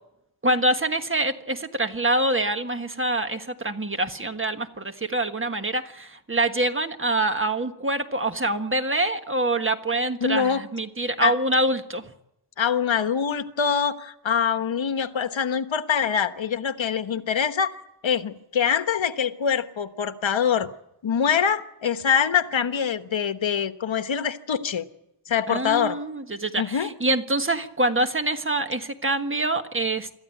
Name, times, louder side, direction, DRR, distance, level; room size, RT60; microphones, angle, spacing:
voice 1, 0.4-12.0 25.5-30.2, right 2 dB, 25° right, 7 dB, 1.5 m, -25 dB
voice 2, 10.2-10.6 11.2-11.3 12.6-17.7 18.0-20.7 21.0-24.9 25.3-26.0 26.6-26.9, left 7 dB, 75° left, 10 dB, 1.2 m, -24 dB
26.5 x 13.5 x 9.2 m, 0.86 s
wide cardioid pair, 125°, 47 cm